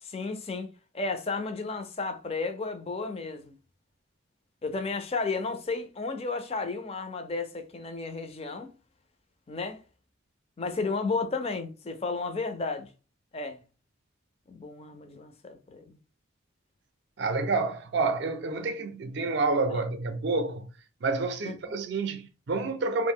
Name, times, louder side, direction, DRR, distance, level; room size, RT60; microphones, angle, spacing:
voice 1, 0.0-0.7 0.9-3.6 4.6-8.7 9.5-9.8 10.6-12.9 13.3-13.6 14.5-16.0 19.7-19.8 21.4-21.6, left 3 dB, 30° left, 0.4 m, -33 dB
voice 2, 17.2-20.7 21.0-23.1, right 3 dB, 55° right, 0.4 m, -28 dB
2.6 x 2.0 x 3.5 m
head